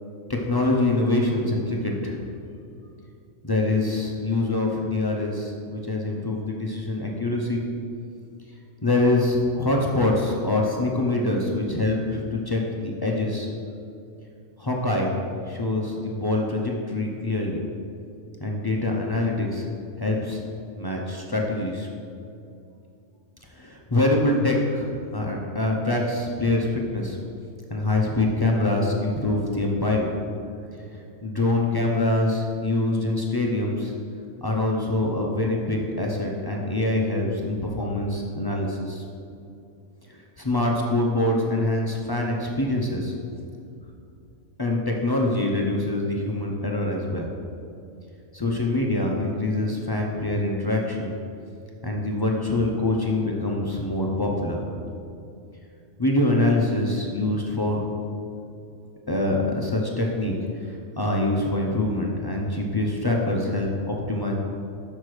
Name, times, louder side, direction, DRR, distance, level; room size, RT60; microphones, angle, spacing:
voice 1, 0.5-2.2 3.4-7.6 8.8-13.5 14.6-15.2 15.5-17.6 18.4-19.7 20.0-20.4 20.7-21.9 23.6-27.2 27.7-30.2 31.2-33.9 34.4-39.0 40.1-43.1 44.6-47.3 48.3-51.1 51.8-54.7 56.0-57.8 59.1-60.4 61.0-64.3, left 2 dB, 30° left, -1 dB, 0.4 m, -24 dB
6.5 x 6.0 x 4.8 m, 2.6 s
omnidirectional pair, 1.4 m